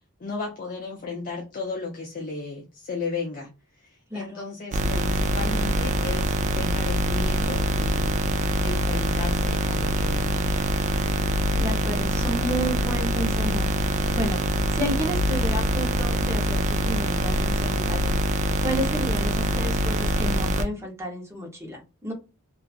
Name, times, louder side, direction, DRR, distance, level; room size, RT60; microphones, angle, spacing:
voice 1, 0.2-8.2 8.6-10.5, left 4 dB, 40° left, 0.5 m, -35 dB
voice 2, 4.1-4.4 11.5-14.4 14.7-22.1, equal, 10° right, 0.8 m, -32 dB
sound 1, 4.7-20.7, right 1 dB, 35° right, 0.3 m, -24 dB
2.8 x 2.4 x 2.4 m
head